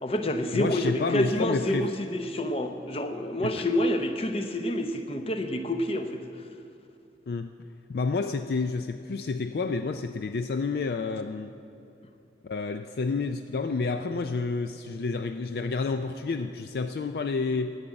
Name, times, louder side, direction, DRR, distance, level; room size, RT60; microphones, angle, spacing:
voice 1, 0.0-6.2, left 1 dB, 35° left, 7 dB, 0.7 m, -28 dB
voice 2, 0.5-1.9 3.4-3.7 7.3-7.5 7.9-11.6 12.4-17.8, left 4 dB, 60° left, 8 dB, 0.4 m, -29 dB
11.0 x 8.7 x 7.8 m, 2.6 s
head